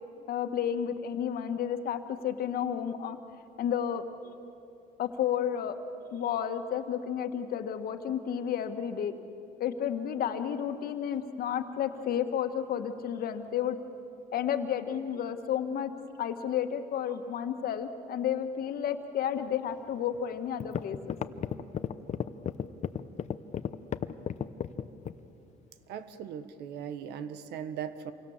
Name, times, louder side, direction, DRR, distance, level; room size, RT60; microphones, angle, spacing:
voice 1, 0.3-3.2 3.6-4.3 5.0-5.8 6.1-9.1 9.6-13.8 14.3-15.9 16.2-21.2, left 9 dB, 60° left, 7 dB, 1.8 m, -31 dB
sound 1, 20.1-20.2 20.6-25.2, left 8 dB, 45° left, 0.8 m, -33 dB
voice 2, 25.9-28.1, right 8 dB, 80° right, 11 dB, 1.4 m, -39 dB
28.0 x 24.0 x 7.4 m, 2.7 s
cardioid pair, 110°, 17 cm